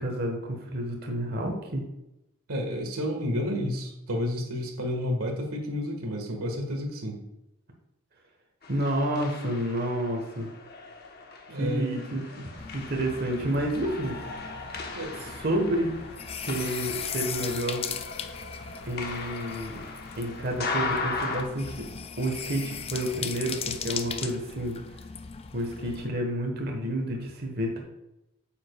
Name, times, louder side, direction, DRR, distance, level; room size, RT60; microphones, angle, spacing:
voice 1, 0.0-1.8 8.7-10.5 11.6-14.2 15.4-15.9 16.4-17.9 18.8-19.8 20.2-21.7 22.2-24.8 25.5-27.8, right 1 dB, 45° right, 1 dB, 1.2 m, -30 dB
voice 2, 2.5-7.2 11.5-11.9 14.9-15.3, left 1 dB, 90° right, 2 dB, 1.6 m, -31 dB
sound 1, 8.6-21.4, left 3 dB, 45° left, 1.0 m, -38 dB
sound 2, 12.6-26.1, left 7 dB, 25° left, 0.3 m, -38 dB
8.7 x 7.5 x 2.3 m, 0.91 s
head